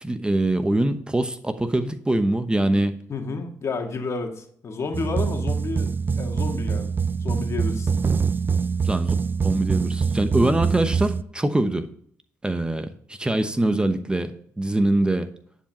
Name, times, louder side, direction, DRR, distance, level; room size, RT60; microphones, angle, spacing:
voice 1, 0.0-3.0 8.8-9.1 9.4-11.9 12.4-15.3, right 1 dB, 15° right, 9 dB, 0.8 m, -23 dB
voice 2, 3.1-6.9 7.2-7.9, left 4 dB, 50° left, 4 dB, 1.8 m, -31 dB
sound 1, 4.9-11.2, right 5 dB, 35° right, 0.4 m, -24 dB
10.0 x 4.8 x 6.1 m, 0.63 s
supercardioid pair, 60°, 6 cm